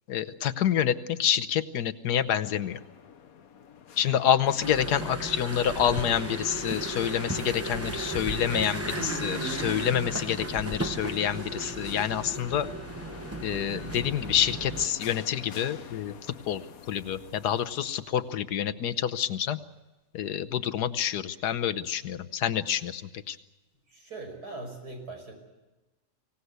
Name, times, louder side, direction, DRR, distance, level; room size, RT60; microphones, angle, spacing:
voice 1, 0.1-2.8 4.0-12.7 13.4-16.1 16.5-19.6 20.1-23.0 23.3-23.4, left 9 dB, 85° left, 13 dB, 1.5 m, -27 dB
sound 1, 2.4-18.5, left 7 dB, 65° left, 1.4 m, -47 dB
sound 2, 4.6-14.9, right 2 dB, 10° right, 0.9 m, -36 dB
sound 3, 6.1-12.3, right 2 dB, 50° right, 3.7 m, -44 dB
voice 2, 23.9-25.3, right 2 dB, 75° right, 3 dB, 6.1 m, -40 dB
24.5 x 17.5 x 8.1 m, 1.1 s
omnidirectional pair, 1.7 m